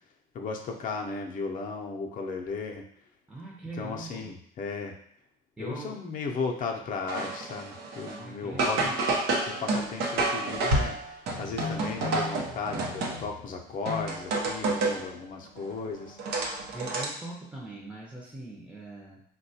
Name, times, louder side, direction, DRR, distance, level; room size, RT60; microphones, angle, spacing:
voice 1, 0.3-2.9 3.8-4.9 5.6-8.9 9.5-16.2, left 4 dB, 50° left, 2 dB, 0.6 m, -35 dB
voice 2, 3.3-4.4 5.6-6.0 8.1-9.0 16.7-19.2, right 2 dB, 5° right, -3 dB, 0.6 m, -41 dB
sound 1, 7.1-8.2 8.6-13.5 13.9-15.1 15.6-17.1, right 2 dB, 90° right, 0.7 m, -29 dB
4.0 x 2.2 x 2.7 m, 0.66 s
cardioid pair, 110°, 17 cm